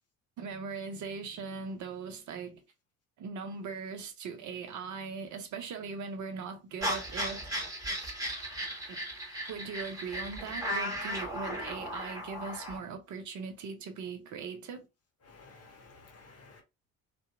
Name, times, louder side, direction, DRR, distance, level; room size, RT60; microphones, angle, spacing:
voice 1, 0.4-2.6 3.2-7.5 8.9-9.0 9.5-14.9, right 5 dB, 45° right, 0.6 m, -40 dB
sound 1, 6.8-12.8, equal, 10° right, 1.3 m, -36 dB
voice 2, 15.3-16.6, left 3 dB, 35° left, 1.0 m, -54 dB
2.6 x 2.2 x 2.5 m
hypercardioid pair, 55°, 42 cm